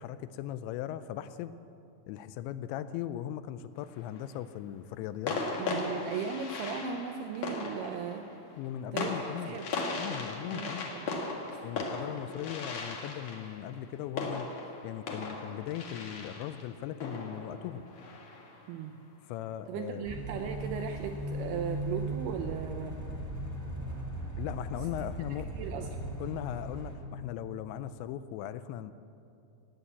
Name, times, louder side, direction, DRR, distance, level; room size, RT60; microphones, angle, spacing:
voice 1, 0.0-1.5 2.1-5.4 8.6-9.6 10.0-10.9 11.6-14.6 14.8-17.9 19.3-20.1 24.4-25.5 26.2-28.9, left 11 dB, 85° left, 13 dB, 2.8 m, -38 dB
sound 1, 3.7-4.3 5.3-18.7, left 3 dB, 60° left, 1.7 m, -38 dB
voice 2, 5.6-8.2 8.9-9.6 10.5-11.3 18.7-19.0 19.7-22.9 25.5-25.9, right 7 dB, 80° right, 5 dB, 2.3 m, -37 dB
sound 2, 20.0-27.0, right 1 dB, 5° left, 1.2 m, -38 dB
18.0 x 8.9 x 8.0 m, 2.6 s
omnidirectional pair, 5.3 m